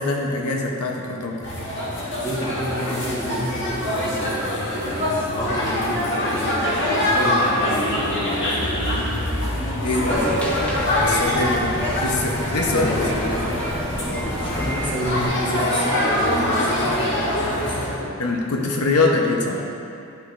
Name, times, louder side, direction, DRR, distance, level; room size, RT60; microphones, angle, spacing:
voice 1, 0.0-1.4 9.8-10.2 11.0-12.9 13.3-13.4 18.2-19.7, left 3 dB, 90° left, 0 dB, 0.7 m, -23 dB
sound 1, 1.4-17.9, left 1 dB, 55° left, 1.4 m, -24 dB
voice 2, 2.2-9.2 10.0-10.3 12.6-13.4 14.1-18.2, equal, 20° left, -5 dB, 1.1 m, -29 dB
sound 2, 10.1-15.3, equal, 5° left, 0.6 m, -31 dB
10.0 x 5.7 x 2.5 m, 2.6 s
head